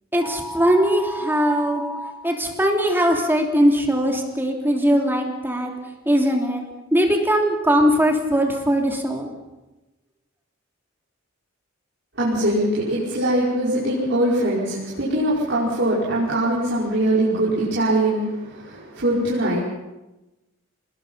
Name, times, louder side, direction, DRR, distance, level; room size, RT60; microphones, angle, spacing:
voice 1, 0.1-5.7 6.0-6.6 6.9-9.3, equal, 10° right, 1 dB, 3.1 m, -20 dB
voice 2, 12.2-19.6, right 1 dB, 60° right, -7 dB, 5.6 m, -22 dB
25.5 x 20.5 x 5.7 m, 1.0 s
head